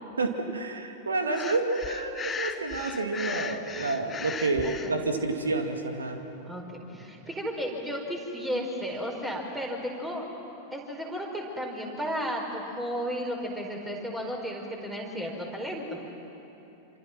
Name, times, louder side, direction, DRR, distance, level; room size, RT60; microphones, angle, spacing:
voice 1, 0.2-6.2, right 3 dB, 75° right, 5 dB, 2.3 m, -29 dB
Breathing, 1.3-4.9, left 6 dB, 20° left, 1.0 m, -37 dB
voice 2, 6.4-10.3 10.7-16.0, equal, 10° right, 0 dB, 4.8 m, -34 dB
27.0 x 26.0 x 6.1 m, 3.0 s
figure-of-eight pair, 90°, 0 cm